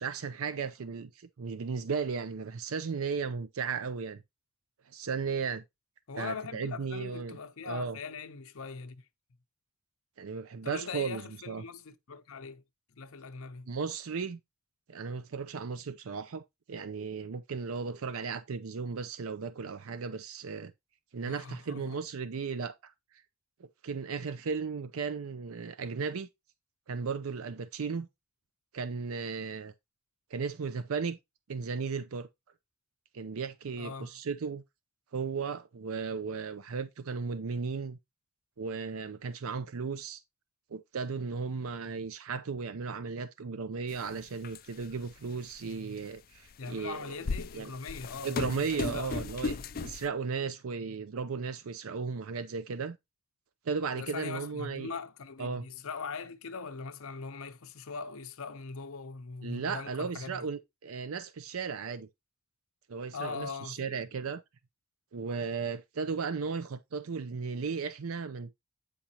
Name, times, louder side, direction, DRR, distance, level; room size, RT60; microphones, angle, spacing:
voice 1, 0.0-4.2 4.9-5.6 6.2-7.4 7.7-8.0 10.2-11.6 13.7-14.4 14.9-16.4 16.7-20.7 21.1-22.9 23.6-26.3 26.9-28.1 28.7-29.7 30.3-31.2 31.5-32.3 33.1-34.6 35.1-38.0 38.6-40.2 40.7-47.2 47.5-47.7 48.2-53.0 53.7-54.9 55.4-55.6 59.4-62.1 62.9-64.4 65.1-68.5, right 5 dB, 75° right, 0.5 m, -35 dB
voice 2, 6.1-9.0 10.6-12.6 12.9-13.7 21.3-22.0 33.8-34.1 46.6-49.2 53.9-60.4 63.1-64.0, left 5 dB, 75° left, 0.7 m, -41 dB
sound 1, 43.9-44.0 44.4-45.0 45.7-45.8 46.8-50.1, left 4 dB, 40° left, 0.4 m, -36 dB
8.5 x 5.1 x 2.9 m
head